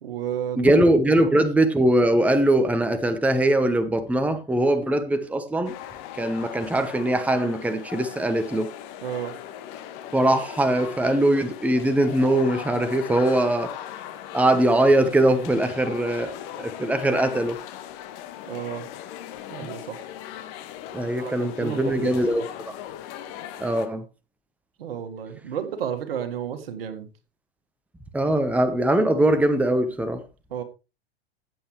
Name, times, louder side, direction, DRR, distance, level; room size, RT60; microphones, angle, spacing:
voice 1, 0.0-0.8 9.0-9.3 18.5-18.9 19.5-20.0 21.2-22.5 24.8-27.1 30.5-30.6, right 9 dB, 65° right, 1.9 m, -32 dB
voice 2, 0.6-5.7 6.1-8.7 10.1-13.7 14.3-17.6 20.9-22.8 23.6-24.0 28.1-30.2, right 1 dB, 5° right, 1.1 m, -21 dB
sound 1, 5.6-23.9, left 11 dB, 45° left, 1.8 m, -39 dB
15.5 x 7.9 x 3.2 m
figure-of-eight pair, 95°, 31 cm